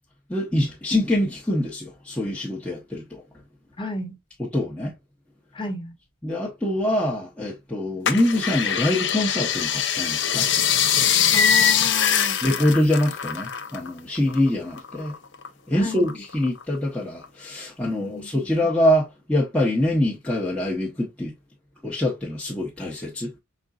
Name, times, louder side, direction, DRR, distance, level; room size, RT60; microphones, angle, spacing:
voice 1, 0.3-3.2 4.4-4.9 6.2-10.5 12.4-15.1 15.7-21.3 21.8-23.3, left 1 dB, 5° left, 0.9 m, -24 dB
voice 2, 3.8-4.2 5.5-5.9 11.3-12.4 15.7-16.1 17.9-18.3, left 2 dB, 25° left, 1.2 m, -33 dB
sound 1, 8.1-13.9 14.2-15.5 15.9-16.8 17.2-17.3, left 8 dB, 55° left, 0.6 m, -22 dB
5.1 x 3.9 x 2.3 m
head